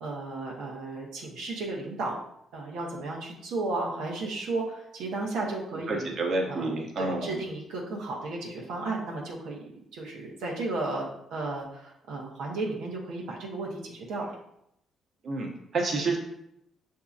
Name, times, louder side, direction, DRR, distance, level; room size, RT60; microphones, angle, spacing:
voice 1, 0.0-2.2 2.5-6.1 6.5-6.7 7.0-9.6 9.9-14.3, right 2 dB, 85° right, -2 dB, 0.8 m, -34 dB
voice 2, 5.9-7.3 15.2-16.2, right 2 dB, 55° right, 0 dB, 0.9 m, -29 dB
6.8 x 2.7 x 2.4 m, 0.77 s
cardioid pair, 90°, 0 cm